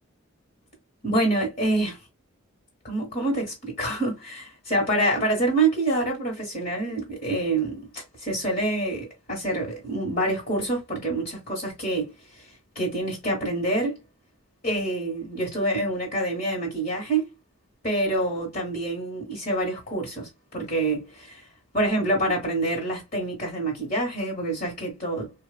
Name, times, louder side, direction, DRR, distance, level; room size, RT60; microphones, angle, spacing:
voice 1, 1.0-2.0 2.8-4.4 4.7-12.5 12.7-14.0 14.6-17.3 17.8-21.4 21.7-25.3, right 2 dB, 45° left, 1.5 m, -26 dB
4.3 x 2.4 x 2.2 m
head